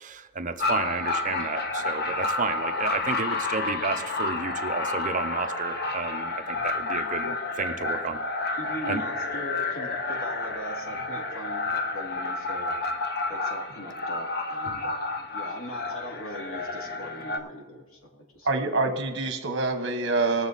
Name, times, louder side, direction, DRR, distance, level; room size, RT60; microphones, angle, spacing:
voice 1, 0.0-7.3 7.6-8.2 8.9-9.0 14.7-14.8, right 4 dB, 35° right, 8 dB, 0.7 m, -31 dB
sound 1, 0.6-17.4, left 3 dB, 50° left, 0.9 m, -30 dB
voice 2, 8.6-12.7 13.3-18.5, equal, 85° left, -1 dB, 2.5 m, -40 dB
voice 3, 18.4-20.5, right 3 dB, 55° right, 6 dB, 1.3 m, -26 dB
20.0 x 7.2 x 4.1 m, 1.3 s
head